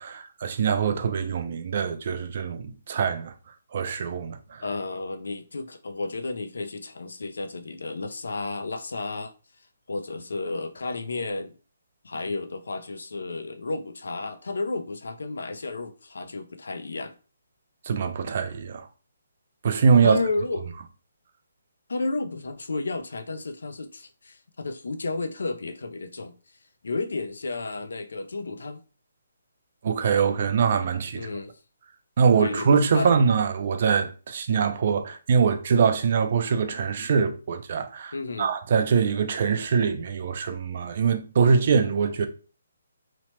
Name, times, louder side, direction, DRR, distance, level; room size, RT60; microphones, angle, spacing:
voice 1, 0.0-3.3 3.7-4.6 17.9-18.8 19.6-20.2 29.8-31.3 32.2-42.3, right 6 dB, 35° right, 0.3 m, -23 dB
voice 2, 4.6-9.3 9.9-11.5 12.0-17.1 20.0-20.8 21.9-26.3 26.8-28.8 31.1-31.5 32.4-32.7 32.9-33.1 38.1-38.5, left 3 dB, 85° left, 0.4 m, -32 dB
2.9 x 2.1 x 2.9 m
hypercardioid pair, 175°, 0 cm